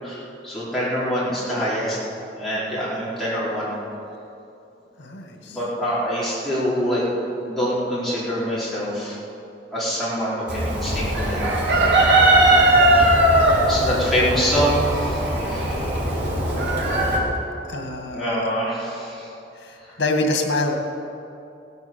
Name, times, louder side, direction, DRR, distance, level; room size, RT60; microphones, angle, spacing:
voice 1, 0.0-2.0 2.3-3.8 5.4-7.0 7.5-9.2 9.7-11.4 11.8-12.1 12.9-13.2 13.7-15.7 18.1-19.3 19.8-19.9, equal, ahead, -10 dB, 4.5 m, -25 dB
voice 2, 5.0-5.6 17.7-18.5 19.6-20.7, left 2 dB, 90° left, 3 dB, 2.0 m, -26 dB
Chicken rooster, 10.5-17.2, right 1 dB, 70° right, 3.5 m, -19 dB
17.0 x 9.4 x 7.2 m, 2.8 s
head